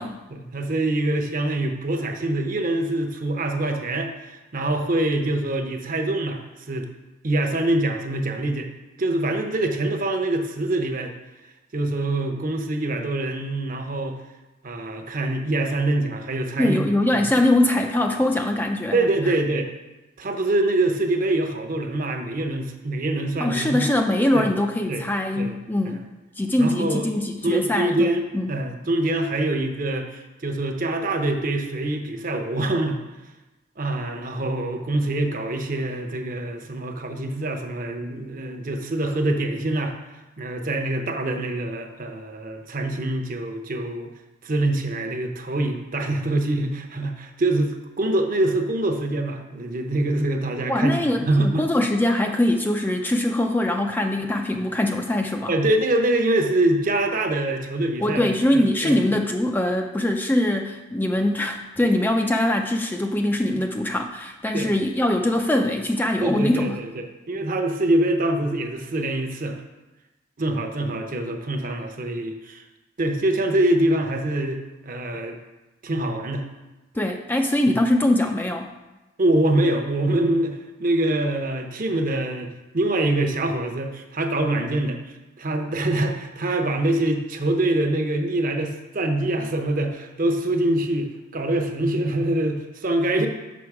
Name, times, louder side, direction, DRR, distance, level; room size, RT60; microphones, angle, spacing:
voice 1, 0.3-6.4 6.7-6.9 7.2-8.7 9.0-11.1 11.7-14.2 14.6-17.3 18.9-19.7 20.2-23.9 24.3-24.6 24.9-25.1 25.4-25.6 25.9-26.0 26.6-27.1 27.4-33.0 33.8-39.9 40.4-44.1 44.4-51.6 55.5-58.3 58.5-59.1 64.5-64.7 66.2-69.6 70.4-72.6 73.0-75.4 75.8-76.5 79.2-82.5 82.7-85.0 85.4-93.3, right 1 dB, 45° right, 4 dB, 0.8 m, -24 dB
voice 2, 16.6-19.1 23.4-26.0 26.4-28.6 50.7-55.5 58.0-66.8 77.0-78.7, left 1 dB, 10° left, 3 dB, 0.3 m, -22 dB
6.1 x 5.9 x 4.7 m, 1.1 s
head